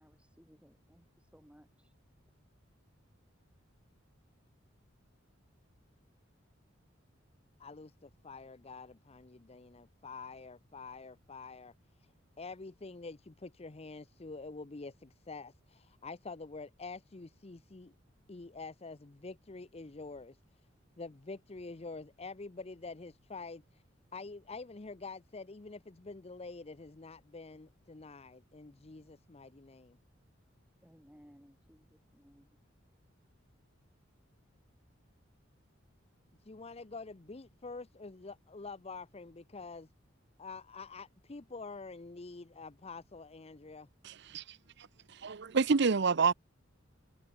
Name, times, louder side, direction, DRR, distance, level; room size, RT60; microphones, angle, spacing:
voice 1, 0.0-1.9 30.8-32.6, equal, 5° right, 5.9 m, -61 dB
voice 2, 7.6-11.7 12.4-17.9 18.3-20.4 21.0-23.6 24.1-30.0 36.5-39.9 40.4-43.9, left 3 dB, 30° left, 0.7 m, -47 dB
voice 3, 44.0-44.4 45.2-46.3, right 4 dB, 60° right, 0.7 m, -28 dB
head